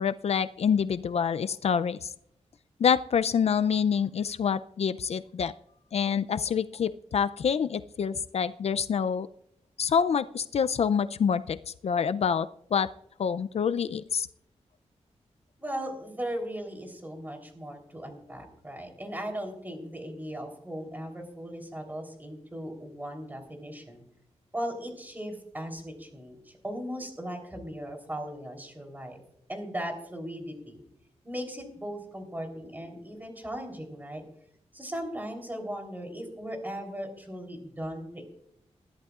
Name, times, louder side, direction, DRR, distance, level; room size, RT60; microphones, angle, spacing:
voice 1, 0.0-2.1 2.8-5.5 5.9-9.3 9.8-12.9 13.2-14.3, left 7 dB, 60° left, 13 dB, 0.4 m, -27 dB
voice 2, 15.6-24.0 24.5-29.2 29.5-30.8 31.2-34.2 34.7-38.2, equal, 15° right, 3 dB, 3.5 m, -38 dB
20.5 x 13.5 x 2.4 m, 0.74 s
wide cardioid pair, 105°, 12 cm